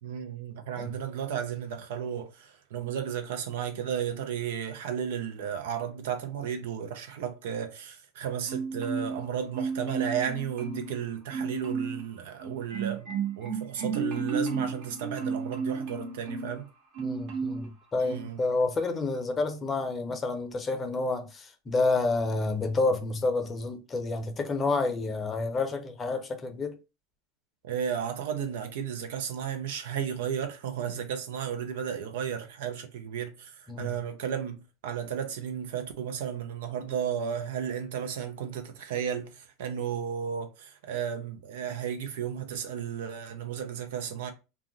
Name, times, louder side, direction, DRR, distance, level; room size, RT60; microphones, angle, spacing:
voice 1, 0.0-13.1 13.4-16.7 18.0-18.4 27.6-44.3, right 8 dB, 75° right, 0.5 m, -34 dB
Marimba xylophone, 8.5-9.3 9.5-11.0 11.3-12.0 12.4-16.6 16.9-17.7 18.0-18.3, right 5 dB, 60° right, 1.1 m, -33 dB
voice 2, 17.0-26.7 33.7-33.9, left 3 dB, 25° left, 0.6 m, -29 dB
2.3 x 2.0 x 3.7 m
hypercardioid pair, 105°, 0 cm